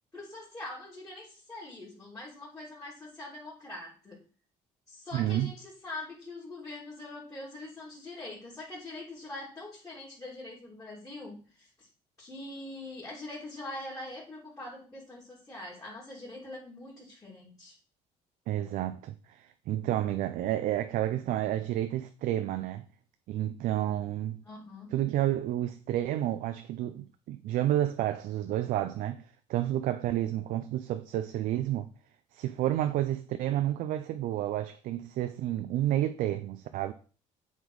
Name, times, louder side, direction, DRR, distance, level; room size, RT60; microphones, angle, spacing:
voice 1, 0.1-4.2 4.9-11.9 12.2-17.7 24.4-24.9, left 2 dB, 20° left, 3.3 m, -43 dB
voice 2, 5.1-5.5 18.5-22.8 23.3-24.4 24.9-29.2 29.5-31.9 32.3-36.9, right 13 dB, 75° right, 0.5 m, -30 dB
8.1 x 3.6 x 4.7 m
supercardioid pair, 80°, 14 cm